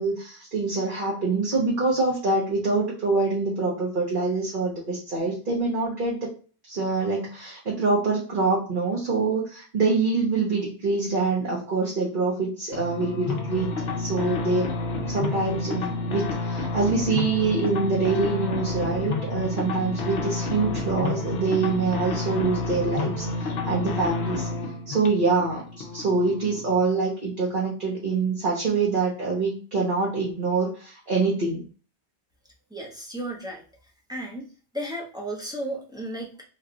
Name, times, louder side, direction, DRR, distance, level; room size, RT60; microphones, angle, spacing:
voice 1, 0.0-6.3 6.6-13.7 14.0-14.7 15.1-24.5 24.9-31.7, right 3 dB, 50° right, -5 dB, 1.1 m, -25 dB
sound 1, 12.7-26.8, left 3 dB, 65° left, 0.9 m, -30 dB
voice 2, 32.7-33.6 34.1-34.5 34.7-36.5, right 1 dB, 5° right, -2 dB, 0.7 m, -34 dB
3.3 x 2.4 x 3.8 m, 0.38 s
omnidirectional pair, 1.2 m